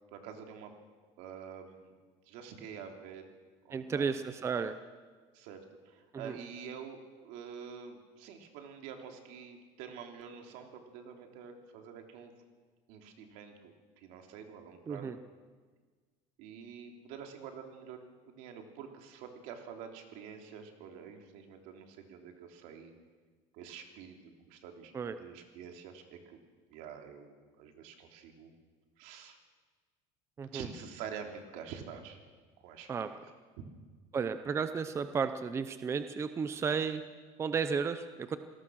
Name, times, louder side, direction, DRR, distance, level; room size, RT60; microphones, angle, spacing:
voice 1, 0.1-0.7 1.2-1.9 2.3-3.2 3.6-4.1 5.3-12.3 12.9-15.2 16.4-22.9 23.5-24.9 25.2-26.4 26.7-28.5 29.0-29.4 30.4-32.2 32.6-33.2, right 7 dB, 75° right, 4 dB, 3.2 m, -47 dB
voice 2, 3.7-4.7 6.1-6.4 14.9-15.2 24.9-25.1 30.4-30.7 32.9-33.1 34.1-37.0 37.4-38.4, right 6 dB, 20° right, 10 dB, 0.7 m, -33 dB
27.0 x 18.5 x 6.4 m, 1.5 s
cardioid pair, 160°, 13 cm